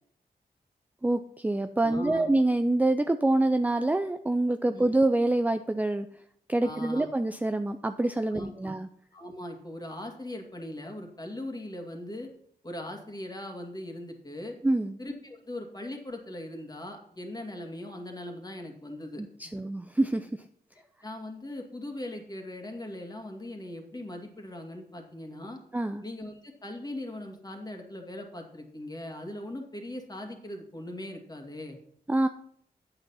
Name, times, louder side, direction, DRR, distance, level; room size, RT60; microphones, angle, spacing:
voice 1, 1.0-6.1 6.5-8.9 14.6-15.0 19.2-20.3 25.7-26.0 32.1-32.3, right 2 dB, 10° right, 9 dB, 0.4 m, -26 dB
voice 2, 1.8-2.3 4.7-5.0 6.6-7.1 8.3-8.7 9.1-12.3 12.6-14.6 15.0-19.2 21.0-25.6 26.0-31.8, left 1 dB, 25° left, 3 dB, 2.2 m, -40 dB
8.5 x 6.9 x 5.7 m, 0.66 s
cardioid pair, 80°, 16 cm